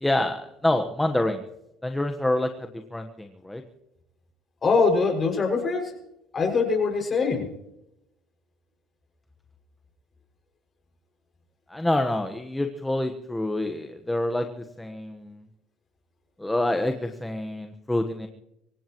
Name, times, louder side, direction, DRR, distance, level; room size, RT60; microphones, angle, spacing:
voice 1, 0.0-1.4 1.8-3.6 11.7-15.4 16.4-18.3, left 1 dB, 5° left, 6 dB, 1.3 m, -27 dB
voice 2, 4.6-5.9 6.3-7.5, left 4 dB, 30° left, 2 dB, 6.1 m, -23 dB
25.5 x 16.5 x 3.1 m, 0.84 s
supercardioid pair, 110°, 0 cm